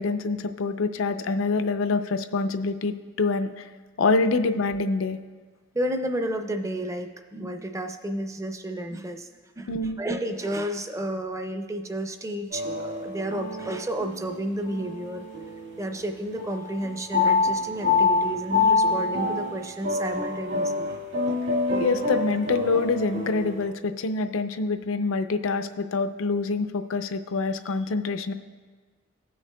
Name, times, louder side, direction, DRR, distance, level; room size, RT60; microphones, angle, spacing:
voice 1, 0.0-3.7 4.0-5.2 9.7-10.0 21.8-28.3, left 3 dB, 85° left, 9 dB, 0.5 m, -26 dB
voice 2, 5.7-9.3 9.6-9.7 10.0-15.3 15.8-20.9, right 1 dB, 15° right, 7 dB, 0.5 m, -31 dB
sound 1, 12.5-16.0 16.4-23.7, left 3 dB, 60° right, 1.8 m, -27 dB
18.5 x 6.3 x 2.2 m, 1.4 s
head